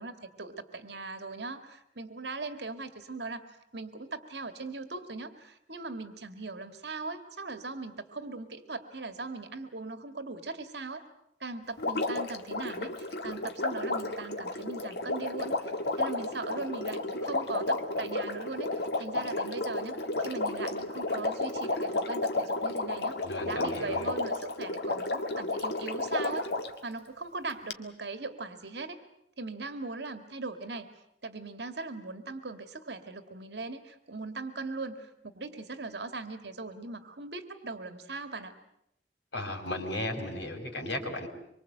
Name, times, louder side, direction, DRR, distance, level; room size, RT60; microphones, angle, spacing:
voice 1, 0.0-3.4 3.7-11.0 11.4-15.7 16.0-23.2 23.5-26.5 26.8-29.0 29.4-30.9 31.2-38.5, right 3 dB, 75° right, 8 dB, 2.1 m, -39 dB
Water, 11.8-26.8 27.7-27.8, left 2 dB, 70° left, 1.9 m, -32 dB
voice 2, 23.2-24.1 39.3-41.3, left 1 dB, 90° left, 3 dB, 5.0 m, -35 dB
25.5 x 24.0 x 8.0 m, 0.78 s
head